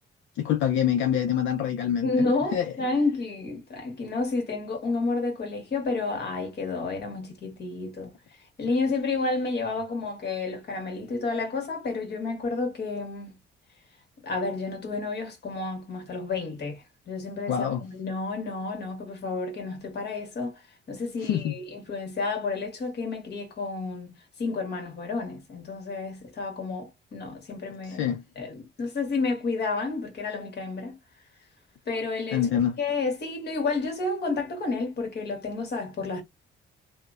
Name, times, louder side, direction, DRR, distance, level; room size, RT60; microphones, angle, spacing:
voice 1, 0.4-2.1 2.5-2.7 17.5-17.8 21.2-21.5 27.8-28.2 32.3-32.8, left 9 dB, 75° left, 0.5 m, -25 dB
voice 2, 2.0-8.1 8.6-13.4 14.2-20.6 20.9-28.1 28.4-31.0 31.9-32.4 32.8-36.2, left 3 dB, 55° left, 1.3 m, -30 dB
2.8 x 2.0 x 2.3 m
cardioid pair, 90°, 20 cm